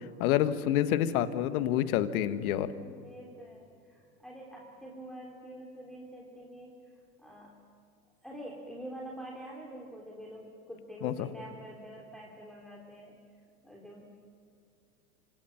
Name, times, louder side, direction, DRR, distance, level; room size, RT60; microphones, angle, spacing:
voice 1, 0.2-2.7 11.0-11.3, left 11 dB, 65° left, 12 dB, 1.6 m, -28 dB
voice 2, 2.7-6.8 7.2-7.6 8.2-13.1 13.6-14.1, right 1 dB, ahead, -2 dB, 3.3 m, -46 dB
26.5 x 26.0 x 5.9 m, 2.4 s
hypercardioid pair, 110°, 48 cm